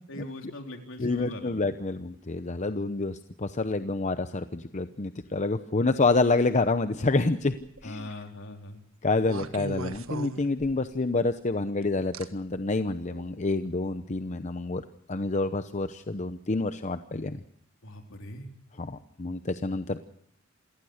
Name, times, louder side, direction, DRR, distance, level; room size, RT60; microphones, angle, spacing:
voice 1, 0.0-1.6 7.8-8.8 17.8-18.5, left 1 dB, 65° left, 4 dB, 3.8 m, -41 dB
voice 2, 1.0-7.5 7.8-8.1 9.0-14.8 15.1-17.4 18.8-20.0, left 3 dB, 35° left, 10 dB, 0.8 m, -28 dB
sound 1, 7.5-7.9 9.2-11.0 12.1-12.3 13.1-13.3, right 3 dB, 70° right, 1.5 m, -38 dB
27.5 x 18.5 x 6.5 m, 0.73 s
head